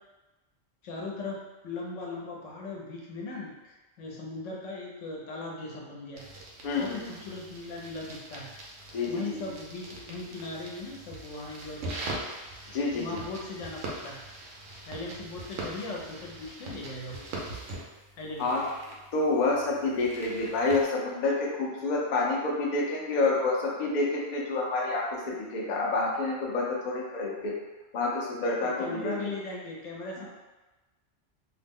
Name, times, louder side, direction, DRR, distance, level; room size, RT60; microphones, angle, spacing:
voice 1, 0.8-6.3 6.8-8.5 8.8-12.3 12.9-14.2 14.8-17.3 18.2-18.7 28.6-30.3, left 3 dB, 75° left, -2 dB, 1.0 m, -39 dB
sound 1, 6.2-20.8, right 2 dB, 85° right, 1.0 m, -42 dB
voice 2, 6.6-7.1 8.9-9.4 12.7-13.1 18.4-18.6 19.1-27.5 27.9-29.2, left 3 dB, 55° left, -3 dB, 0.5 m, -28 dB
2.7 x 2.0 x 3.5 m, 1.1 s
omnidirectional pair, 1.3 m